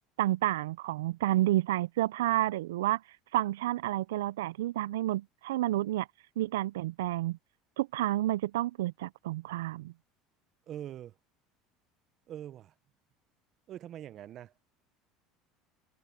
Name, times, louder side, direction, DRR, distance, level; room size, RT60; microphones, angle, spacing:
voice 1, 0.2-3.0 3.3-6.1 6.4-7.4 7.8-9.9, right 15 dB, 90° right, 0.3 m, -30 dB
voice 2, 10.7-11.2 12.3-12.7 13.7-14.5, right 11 dB, 50° right, 0.8 m, -43 dB
supercardioid pair, 95°, 0 cm